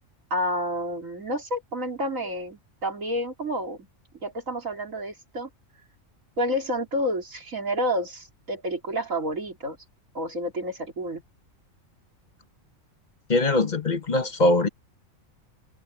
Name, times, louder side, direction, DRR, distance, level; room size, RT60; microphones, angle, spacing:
voice 1, 0.3-3.9 4.2-5.5 6.4-9.8 10.1-11.2, equal, 70° right, 4.1 m, -29 dB
voice 2, 13.3-14.7, left 2 dB, 35° left, 1.2 m, -22 dB
omnidirectional pair, 1.4 m